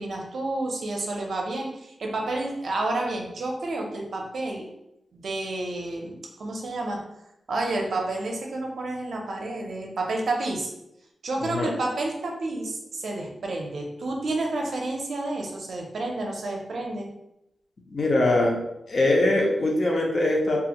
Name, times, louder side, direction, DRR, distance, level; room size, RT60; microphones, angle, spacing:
voice 1, 0.0-4.7 5.1-7.1 7.5-10.7 11.2-17.1, right 2 dB, 65° right, 1 dB, 0.5 m, -30 dB
voice 2, 17.9-18.6 18.9-20.6, left 2 dB, 45° left, 0 dB, 0.5 m, -22 dB
2.4 x 2.4 x 2.8 m, 0.85 s
wide cardioid pair, 135°, 0 cm